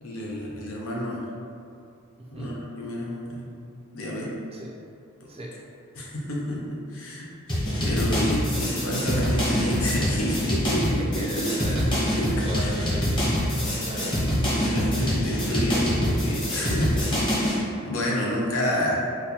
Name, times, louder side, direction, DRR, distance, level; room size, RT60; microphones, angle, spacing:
voice 1, 0.0-1.2 2.3-3.4 3.9-4.4 5.2-5.3 6.0-11.0 11.4-11.5 12.2-12.7 14.6-17.3 17.8-18.9, left 1 dB, 65° left, -3 dB, 0.7 m, -29 dB
voice 2, 2.2-2.6 4.5-4.8 5.3-5.6 11.0-12.0 12.4-13.5 13.8-14.2, right 1 dB, 25° right, -3 dB, 0.4 m, -37 dB
sound 1, 7.5-17.6, equal, 20° left, 0.9 m, -25 dB
4.1 x 2.2 x 2.9 m, 2.5 s
head